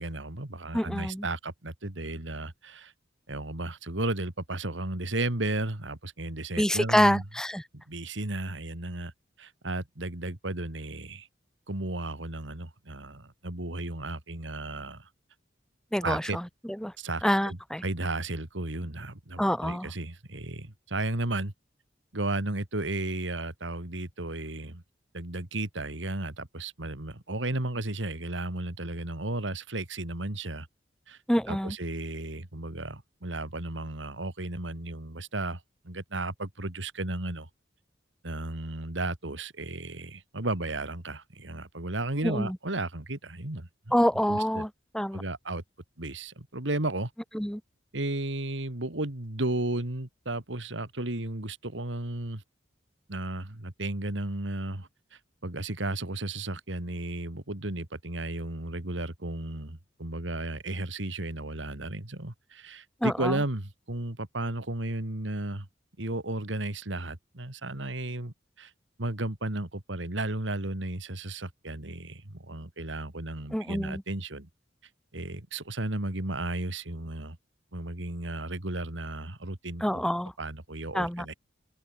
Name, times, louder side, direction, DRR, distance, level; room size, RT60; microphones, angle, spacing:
voice 1, 0.0-2.9 3.3-7.2 7.7-9.1 9.4-11.3 11.7-15.1 16.0-16.4 17.0-21.5 22.1-24.8 25.1-30.7 31.1-31.2 31.5-37.5 38.2-43.9 44.3-44.6 45.1-45.6 46.0-47.1 47.9-52.4 53.1-65.7 66.0-68.7 69.0-74.5 75.1-77.4 77.7-80.0 80.4-81.3, right 2 dB, 90° right, 2.7 m, -34 dB
voice 2, 0.7-1.2 6.6-7.6 15.9-16.4 16.8-16.9 17.2-17.8 19.4-19.9 31.3-31.7 42.2-42.6 43.9-44.7 44.9-45.2 47.3-47.6 63.0-63.4 73.5-74.0 79.8-80.3 80.9-81.2, equal, 5° left, 2.3 m, -26 dB
open air
head